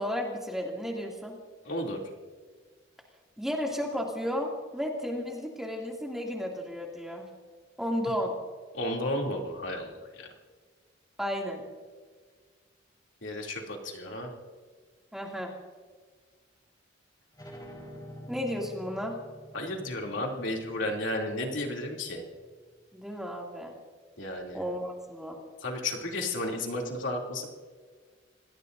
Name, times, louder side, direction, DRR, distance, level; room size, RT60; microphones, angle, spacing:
voice 1, 0.0-1.4 3.4-7.3 7.8-8.3 11.2-11.6 15.1-15.5 18.3-19.2 22.9-23.7 24.5-25.4, equal, ahead, -1 dB, 2.4 m, -33 dB
voice 2, 1.6-2.0 8.7-9.9 10.2-10.3 13.2-14.3 19.5-22.2 24.2-24.6 25.6-27.5, left 1 dB, 75° left, 0 dB, 2.8 m, -33 dB
sound 1, 17.3-22.6, equal, 20° left, 4.3 m, -48 dB
27.5 x 19.0 x 2.6 m, 1.5 s
head